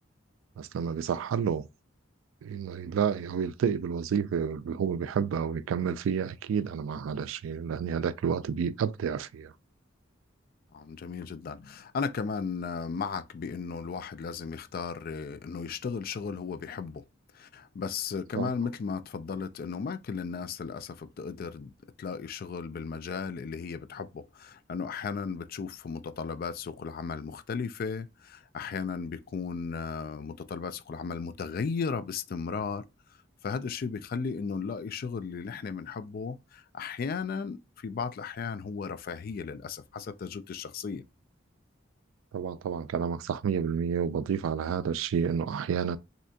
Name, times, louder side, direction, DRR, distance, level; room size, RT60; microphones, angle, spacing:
voice 1, 0.6-1.7 2.4-9.5 18.4-18.5 42.3-46.0, right 7 dB, 90° right, 0.3 m, -30 dB
voice 2, 10.7-17.0 17.3-21.7 22.0-32.8 33.4-41.0, left 5 dB, 50° left, 0.3 m, -35 dB
3.2 x 2.8 x 2.7 m
head